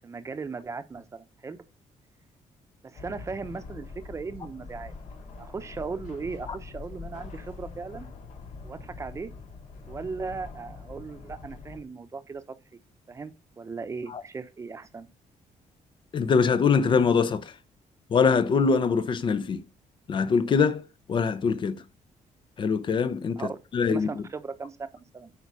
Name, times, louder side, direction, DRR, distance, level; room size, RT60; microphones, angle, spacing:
voice 1, 0.0-1.6 2.8-4.9 5.4-8.1 8.6-9.3 9.9-12.4 13.1-15.1 23.4-23.6 23.9-25.3, right 4 dB, 20° right, 0.8 m, -37 dB
sound 1, 2.9-11.8, left 4 dB, 70° left, 1.9 m, -43 dB
voice 2, 16.1-17.6 18.1-19.6 20.1-21.8 22.6-24.2, left 5 dB, 40° left, 0.6 m, -24 dB
8.4 x 5.0 x 4.7 m
cardioid pair, 160°, 13 cm